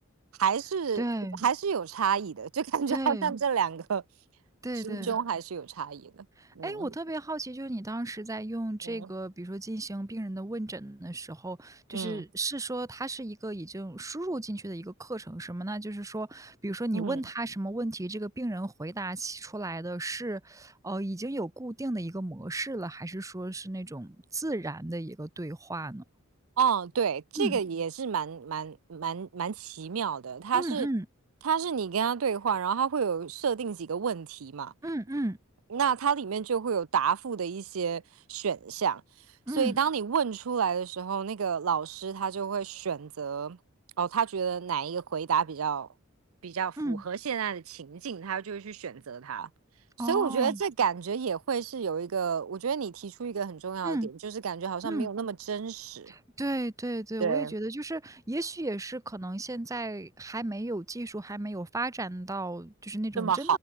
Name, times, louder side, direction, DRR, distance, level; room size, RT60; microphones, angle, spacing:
voice 1, 0.4-1.0 1.4-4.0 4.7-6.3 6.6-6.9 8.8-9.1 11.9-12.2 16.9-17.2 26.6-30.9 31.4-34.7 35.7-38.0 38.3-39.0 39.5-43.6 44.0-45.9 46.4-49.5 50.1-56.1 57.2-57.5 63.2-63.6, right 7 dB, 85° right, 0.5 m, -30 dB
voice 2, 1.0-1.4 2.9-3.3 4.6-5.2 6.4-26.0 27.4-27.6 30.5-31.0 34.8-35.4 39.5-39.8 46.8-47.0 50.0-50.6 53.8-54.1 54.8-55.1 56.1-63.6, right 2 dB, 15° right, 0.7 m, -34 dB
head